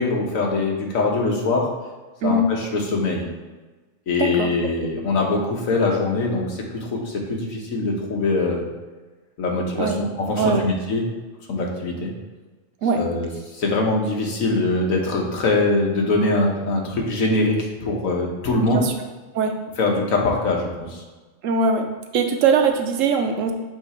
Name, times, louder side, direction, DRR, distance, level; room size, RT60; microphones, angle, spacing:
voice 1, 0.0-1.7 2.2-3.3 4.1-8.6 9.4-11.0 11.5-12.1 12.9-18.9 19.8-21.0, left 2 dB, 90° left, 0 dB, 1.5 m, -23 dB
voice 2, 4.2-4.5 9.8-10.0 10.4-10.6 12.8-13.0 18.7-18.9 19.3-19.5 21.4-21.9 22.1-23.5, right 4 dB, 75° right, 5 dB, 1.0 m, -20 dB
7.8 x 2.9 x 4.4 m, 1.3 s
omnidirectional pair, 1.4 m